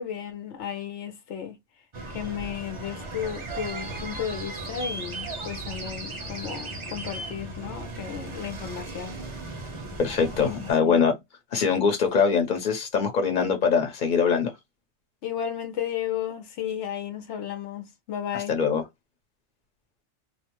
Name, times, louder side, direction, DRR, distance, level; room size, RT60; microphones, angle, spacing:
voice 1, 0.0-1.6 2.1-9.2 10.4-11.0 15.2-18.6, left 9 dB, 85° left, 1.0 m, -34 dB
sound 1, 1.9-10.7, right 2 dB, 35° right, 0.6 m, -36 dB
voice 2, 10.0-11.1 11.5-14.5 18.3-18.8, left 6 dB, 45° left, 1.0 m, -23 dB
2.5 x 2.1 x 3.0 m
omnidirectional pair, 1.2 m